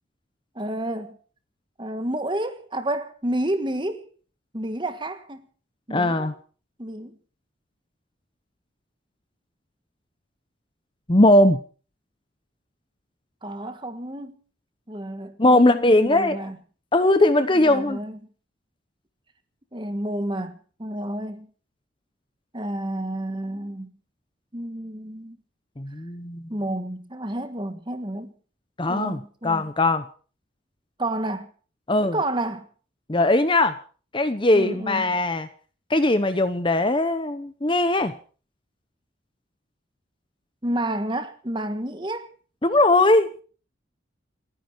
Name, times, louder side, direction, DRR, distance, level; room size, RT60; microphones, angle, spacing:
voice 1, 0.5-1.2 1.8-4.0 4.5-5.5 5.9-6.3 6.8-7.2 13.4-14.3 14.9-16.6 17.5-18.2 19.7-21.5 22.5-23.9 24.5-25.4 26.5-28.3 28.9-29.6 31.0-31.5 32.0-32.7 34.5-35.1 40.6-42.3, right 1 dB, 25° right, 1.5 m, -30 dB
voice 2, 5.9-6.3 11.1-11.6 15.4-16.4 16.9-18.0 25.8-26.4 28.8-30.0 31.9-32.1 33.1-33.7 34.1-35.5 35.9-38.1 42.6-43.3, left 2 dB, 25° left, 0.9 m, -19 dB
29.0 x 10.0 x 4.7 m
head